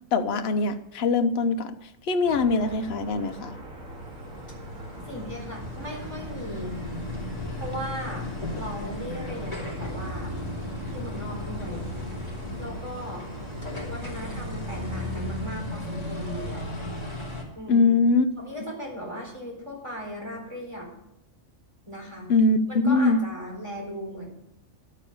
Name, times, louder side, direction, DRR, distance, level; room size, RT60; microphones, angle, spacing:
voice 1, 0.1-1.7 2.0-3.6 17.7-18.3 22.3-22.6 22.8-23.2, left 3 dB, 55° left, 8 dB, 1.1 m, -22 dB
sound 1, 2.2-15.2, right 1 dB, 85° right, 2.8 m, -43 dB
sound 2, 3.7-17.4, left 1 dB, 30° left, 3.1 m, -35 dB
voice 2, 5.1-6.8 7.6-10.3 10.9-11.8 12.6-13.2 13.9-16.7 17.6-17.9 18.4-20.9 21.9-22.3 22.7-24.3, equal, 20° right, -1 dB, 4.3 m, -37 dB
12.0 x 8.8 x 7.0 m, 0.81 s
omnidirectional pair, 1.3 m